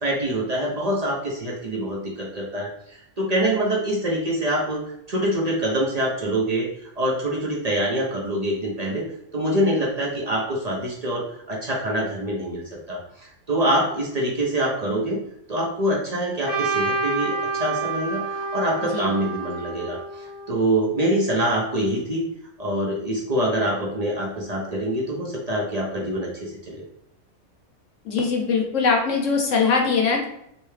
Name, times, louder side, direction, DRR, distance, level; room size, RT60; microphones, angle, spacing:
voice 1, 0.0-4.8 5.1-6.7 7.0-9.0 9.3-15.2 15.5-22.2 22.6-26.8, right 1 dB, 65° right, -2 dB, 0.4 m, -25 dB
Trumpet, 16.4-20.6, right 4 dB, 35° left, 0.4 m, -28 dB
voice 2, 28.0-30.3, left 4 dB, 65° left, 1 dB, 1.0 m, -21 dB
3.2 x 2.8 x 3.2 m, 0.75 s
omnidirectional pair, 1.5 m